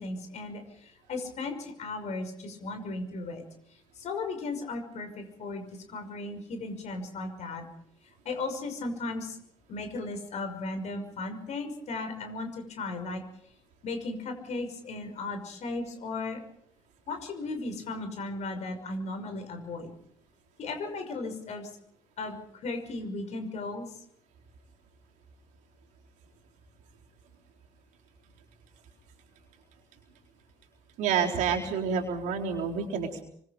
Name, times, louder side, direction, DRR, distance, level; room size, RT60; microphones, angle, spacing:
voice 1, 0.0-3.4 3.7-7.6 8.2-9.4 9.7-13.2 13.8-16.4 17.1-19.9 20.6-21.7 22.2-23.9, left 3 dB, 55° left, 6 dB, 6.0 m, -36 dB
voice 2, 31.0-33.2, right 6 dB, 65° right, 2 dB, 4.1 m, -28 dB
27.5 x 25.0 x 5.2 m, 0.67 s
hypercardioid pair, 50°, 14 cm